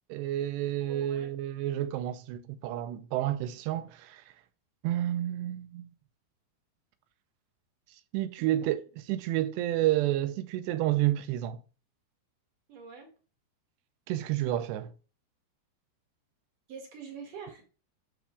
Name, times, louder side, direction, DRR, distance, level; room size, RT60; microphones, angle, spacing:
voice 1, 0.1-4.2 4.8-5.9 8.1-11.6 14.1-14.9, right 13 dB, 85° right, 2.8 m, -30 dB
voice 2, 0.8-1.3 8.4-8.7 12.7-13.1 16.7-17.6, right 6 dB, 55° right, 3.3 m, -45 dB
12.5 x 6.1 x 2.4 m
omnidirectional pair, 5.0 m